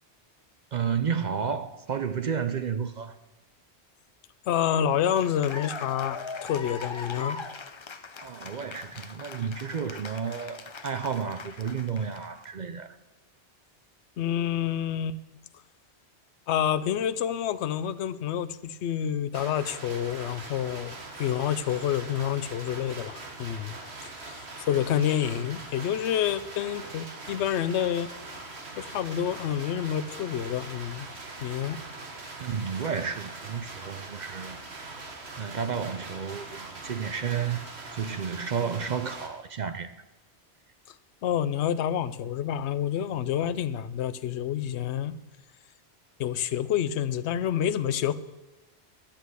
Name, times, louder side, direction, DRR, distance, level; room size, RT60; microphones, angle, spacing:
voice 1, 0.7-3.2 8.2-13.0 32.4-34.6 35.4-37.7 37.9-40.0, right 6 dB, 55° right, 0.6 m, -31 dB
voice 2, 4.5-7.4 14.2-15.2 16.5-23.8 24.2-28.1 28.8-31.1 31.4-31.8 41.2-45.1 46.2-48.1, left 10 dB, 80° left, 0.9 m, -28 dB
Cheering / Applause, 4.9-12.5, left 4 dB, 35° left, 0.5 m, -41 dB
sound 1, 19.3-39.3, right 3 dB, 75° right, 1.7 m, -42 dB
11.5 x 8.3 x 8.0 m
omnidirectional pair, 1.1 m